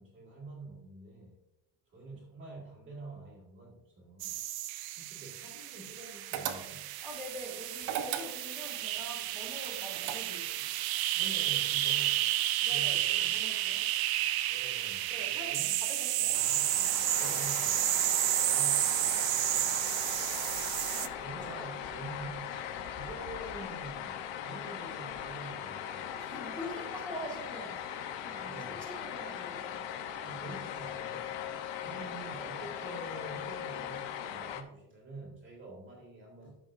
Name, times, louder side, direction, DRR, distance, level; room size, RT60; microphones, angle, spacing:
voice 1, 0.0-1.3 1.9-4.4 5.0-6.9 11.1-12.2 12.6-13.3 14.5-15.7 16.2-17.8 18.4-19.8 21.1-26.1 28.4-28.9 30.2-31.3 31.8-36.6, right 2 dB, 25° right, -4 dB, 2.2 m, -47 dB
sound 1, 4.2-21.1, right 14 dB, 60° right, 0.6 m, -31 dB
sound 2, 6.3-7.0 7.8-8.7 9.6-10.6, right 9 dB, 80° right, 1.1 m, -36 dB
voice 2, 7.0-10.7 12.6-13.9 15.1-16.5 20.8-22.0 26.1-30.0, equal, ahead, -4 dB, 2.6 m, -45 dB
sound 3, 16.3-34.6, left 9 dB, 80° left, 1.0 m, -40 dB
13.5 x 6.3 x 2.6 m, 0.94 s
cardioid pair, 165°, 43 cm